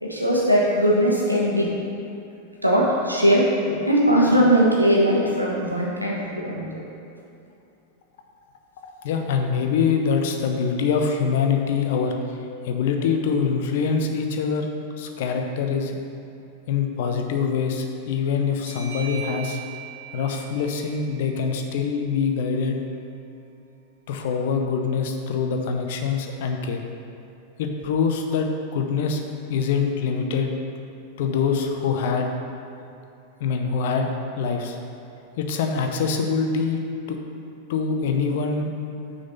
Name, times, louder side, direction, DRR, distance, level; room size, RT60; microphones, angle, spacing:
voice 1, 0.0-1.7 2.6-6.8, equal, 90° right, -4 dB, 1.1 m, -20 dB
voice 2, 8.8-12.2 12.6-14.7 15.0-16.0 16.7-19.6 20.1-22.8 24.1-26.8 27.6-29.2 29.5-30.5 31.2-32.3 33.4-34.1 34.4-34.8 35.4-36.8 37.1-37.2 37.7-38.7, left 5 dB, 55° left, 4 dB, 0.6 m, -24 dB
sound 1, 18.7-22.0, right 10 dB, 55° right, 1.1 m, -40 dB
6.2 x 4.0 x 5.3 m, 2.7 s
figure-of-eight pair, 90°, 0 cm